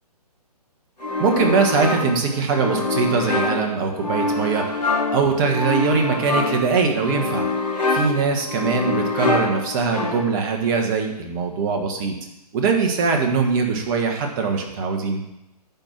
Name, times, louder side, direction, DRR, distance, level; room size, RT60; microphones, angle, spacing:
sound 1, 1.0-10.5, left 3 dB, 80° left, 3.4 m, -25 dB
voice 1, 1.2-4.6 5.1-7.4 7.9-12.2 12.5-15.2, right 5 dB, 30° right, 3 dB, 1.6 m, -22 dB
10.5 x 4.6 x 7.5 m, 0.88 s
figure-of-eight pair, 130°, 20 cm